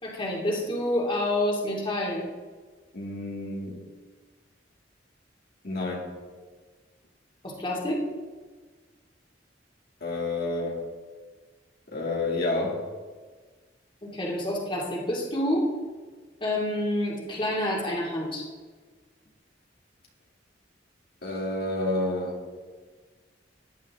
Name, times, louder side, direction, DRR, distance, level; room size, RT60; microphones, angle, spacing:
voice 1, 0.0-2.2 7.4-8.1 14.0-15.7 16.4-18.5, left 1 dB, 25° left, -2 dB, 2.4 m, -28 dB
voice 2, 2.9-3.8 5.6-6.2 10.0-10.9 11.9-12.9 21.2-22.4, left 2 dB, 55° left, -2 dB, 2.3 m, -30 dB
15.5 x 10.5 x 3.7 m, 1.4 s
head